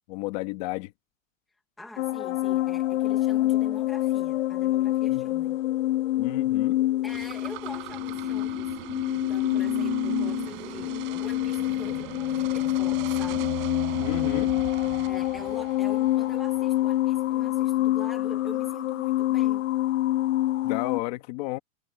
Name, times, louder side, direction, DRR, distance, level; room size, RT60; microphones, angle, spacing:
voice 1, 0.1-0.9 5.1-5.3 6.2-6.8 14.0-14.5 20.6-21.6, left 20 dB, 30° left, 1.4 m, -32 dB
voice 2, 1.8-5.6 7.0-8.7 9.1-13.5 15.0-19.6, equal, ahead, 0.8 m, -44 dB
sound 1, 2.0-21.0, left 15 dB, 65° left, 1.8 m, -26 dB
sound 2, 7.1-16.6, right 25 dB, 30° right, 6.8 m, -38 dB
supercardioid pair, 175°, 41 cm